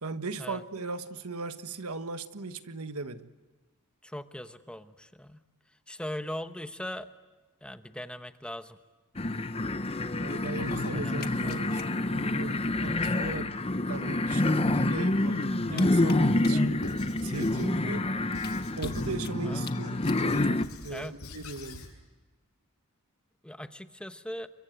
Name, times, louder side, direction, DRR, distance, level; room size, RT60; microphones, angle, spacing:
voice 1, 0.0-3.3 10.2-16.8 17.2-18.0 18.8-21.9, right 3 dB, 80° right, 1.4 m, -38 dB
voice 2, 4.0-5.4 5.9-7.1 7.6-8.8 10.9-11.9 15.7-15.9 16.5-16.7 17.9-18.0 19.4-19.6 20.9-21.2 23.4-24.5, left 1 dB, 5° left, 0.9 m, -40 dB
sound 1, 9.2-20.7, left 2 dB, 25° left, 0.8 m, -28 dB
sound 2, 10.5-11.8 12.1-12.2 12.4-12.5 13.5-13.6 14.5-16.8 17.4-17.5 17.8-17.9 18.3-19.3 19.6-19.7 20.0-20.2 21.0-21.1, left 2 dB, 45° left, 1.5 m, -38 dB
Squeak / Writing, 16.8-17.7 18.3-19.2 19.7-21.9, left 1 dB, 80° left, 6.7 m, -43 dB
29.5 x 24.0 x 7.9 m
head